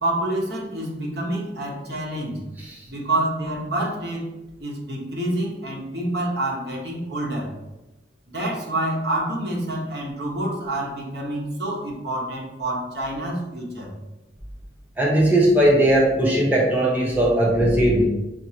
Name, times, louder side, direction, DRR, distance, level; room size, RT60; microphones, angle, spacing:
voice 1, 0.0-2.4 2.9-4.3 4.6-7.5 8.3-13.9, right 1 dB, 65° right, -2 dB, 1.1 m, -27 dB
voice 2, 15.0-18.0, right 1 dB, 10° right, -3 dB, 0.6 m, -18 dB
6.1 x 2.6 x 2.8 m, 1.0 s
head